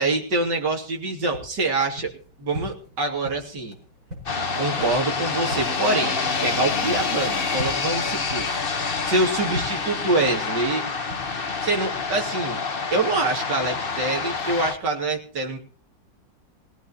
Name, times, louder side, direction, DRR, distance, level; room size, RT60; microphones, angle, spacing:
voice 1, 0.0-2.1 2.4-3.8 4.6-8.5 9.0-10.8 11.6-12.6 12.9-15.6, right 2 dB, 70° right, 2 dB, 3.5 m, -25 dB
sound 1, 1.3-11.3, left 1 dB, 50° right, 6.3 m, -40 dB
sound 2, 4.3-14.7, left 4 dB, 35° left, 1.3 m, -27 dB
20.5 x 17.5 x 3.0 m, 0.38 s
omnidirectional pair, 2.0 m